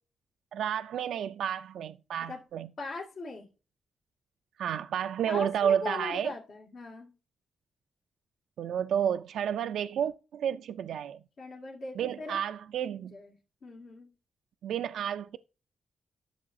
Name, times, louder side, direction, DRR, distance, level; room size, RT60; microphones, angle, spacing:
voice 1, 0.5-2.7 4.6-6.3 8.6-11.2 12.0-13.2 14.6-15.4, right 9 dB, 85° right, 0.3 m, -31 dB
voice 2, 2.8-3.5 5.3-7.1 11.4-12.4 13.1-13.4 13.6-14.1, left 3 dB, 70° left, 2.1 m, -40 dB
11.0 x 6.8 x 2.6 m
cardioid pair, 65°, 0 cm